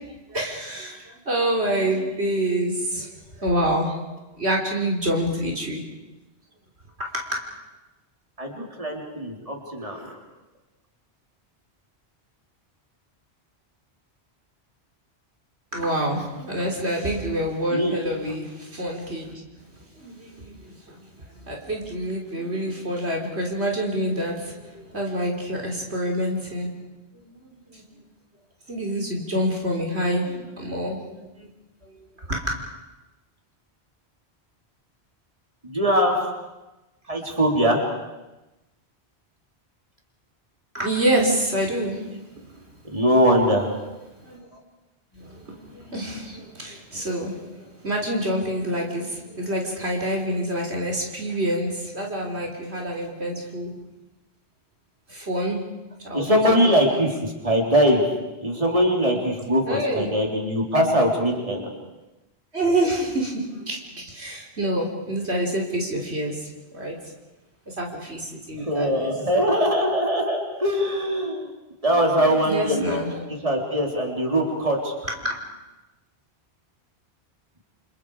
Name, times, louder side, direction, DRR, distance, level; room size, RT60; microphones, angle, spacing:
voice 1, 0.3-3.9 4.4-5.8 7.0-7.5 15.7-19.4 20.0-21.1 21.4-26.7 27.1-27.8 28.7-31.5 31.8-31.9 32.3-32.6 40.7-42.0 44.2-44.4 45.1-53.8 55.1-55.7 56.0-57.0 59.7-60.1 62.5-67.0 67.7-69.1 71.9-73.2 75.1-75.4, right 1 dB, 75° right, 0 dB, 4.0 m, -27 dB
voice 2, 8.4-10.1 17.7-18.0 35.6-36.2 37.1-37.8 42.8-43.7 56.1-58.0 58.4-61.7 68.6-71.5 71.8-73.0 73.4-74.9, equal, 30° right, 0 dB, 4.0 m, -22 dB
29.0 x 28.5 x 5.0 m, 1.0 s
omnidirectional pair, 1.1 m